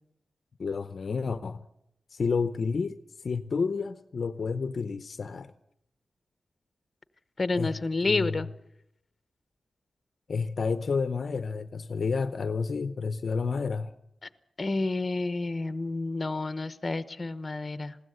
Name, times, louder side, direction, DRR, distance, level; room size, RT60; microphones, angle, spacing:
voice 1, 0.6-1.6 2.1-2.9 3.2-5.5 7.5-8.5 10.3-13.9, left 5 dB, 50° left, 0.7 m, -30 dB
voice 2, 7.4-8.5 14.6-18.0, left 3 dB, 25° left, 1.0 m, -29 dB
20.5 x 16.0 x 8.1 m
wide cardioid pair, 170°, 0 cm